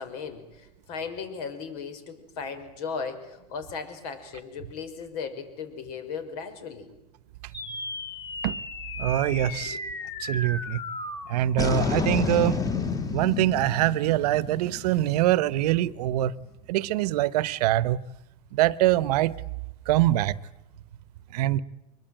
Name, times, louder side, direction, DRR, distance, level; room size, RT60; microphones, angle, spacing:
voice 1, 0.0-6.9 9.6-9.8, left 5 dB, 65° left, 5.6 m, -36 dB
sound 1, 7.5-16.1, left 4 dB, 15° left, 2.5 m, -32 dB
voice 2, 9.0-9.8 10.2-10.8 11.3-12.6 13.1-16.3 16.7-18.0 18.5-19.3 19.9-20.3 21.3-21.6, right 14 dB, 70° right, 1.0 m, -24 dB
24.0 x 21.5 x 9.2 m
supercardioid pair, 125°, 21 cm